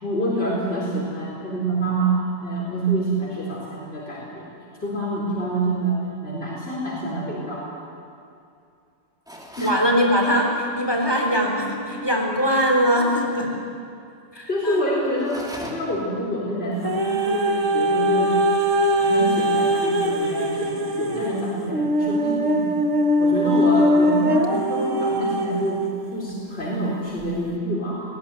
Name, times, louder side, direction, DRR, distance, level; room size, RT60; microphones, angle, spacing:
voice 1, 0.0-2.2 2.4-4.5 4.8-7.7 9.6-9.7 14.5-18.3 18.9-22.7 23.2-25.8 26.1-28.0, right 1 dB, 55° left, -7 dB, 4.4 m, -27 dB
sound 1, 9.3-9.9 15.1-16.1, equal, 5° right, 2.9 m, -37 dB
voice 2, 9.6-13.5 14.3-14.8 23.4-23.9, equal, 20° left, 0 dB, 3.7 m, -22 dB
sound 2, 16.8-25.9 26.6-26.7, equal, 85° right, 2.0 m, -21 dB
19.5 x 18.0 x 9.8 m, 2.5 s
omnidirectional pair, 1.3 m